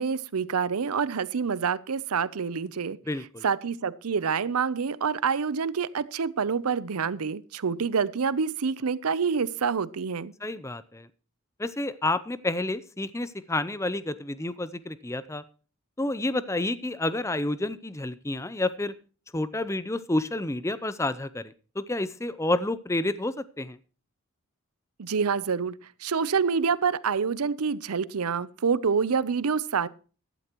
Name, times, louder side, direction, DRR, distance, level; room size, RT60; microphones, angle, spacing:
voice 1, 0.0-3.0 3.4-10.3 25.0-29.9, right 6 dB, 90° right, 0.6 m, -27 dB
voice 2, 3.1-3.4 10.4-11.1 11.6-15.4 16.0-18.9 19.3-23.8, left 2 dB, 15° left, 0.5 m, -29 dB
15.0 x 12.0 x 3.0 m
head